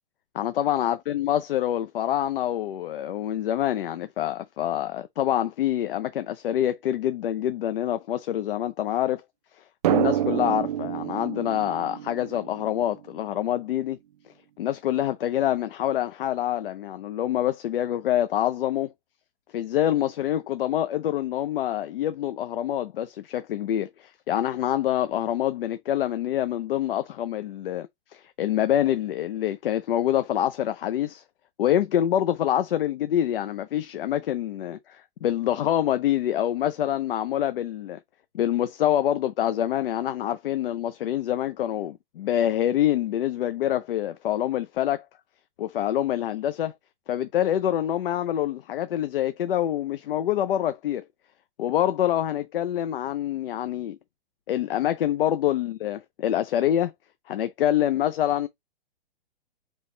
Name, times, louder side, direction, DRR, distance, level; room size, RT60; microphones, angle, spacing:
voice 1, 0.3-9.2 9.6-14.0 14.6-18.9 19.5-31.2 31.6-38.0 38.3-45.1 45.6-46.7 47.1-51.0 51.6-54.0 54.5-56.9 57.3-58.5, left 11 dB, 70° left, 0.5 m, -26 dB
Drum, 9.8-13.2, right 12 dB, 45° right, 0.4 m, -27 dB
4.3 x 3.1 x 3.1 m
hypercardioid pair, 135°, 29 cm